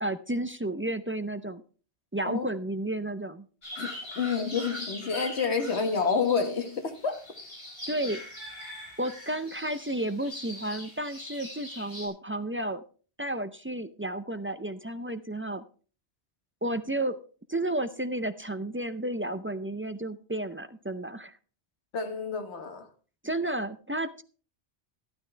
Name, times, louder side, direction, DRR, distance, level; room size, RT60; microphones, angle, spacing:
voice 1, 0.0-1.6 2.1-3.4 7.9-8.2 9.0-12.8 13.2-15.6 16.6-17.2 17.5-21.4 23.2-24.2, right 1 dB, 20° right, 0.3 m, -32 dB
sound 1, 3.6-12.1, left 1 dB, 60° left, 4.9 m, -42 dB
voice 2, 3.8-7.2 21.9-22.9, left 5 dB, 80° left, 1.7 m, -29 dB
12.5 x 12.5 x 3.3 m
omnidirectional pair, 1.1 m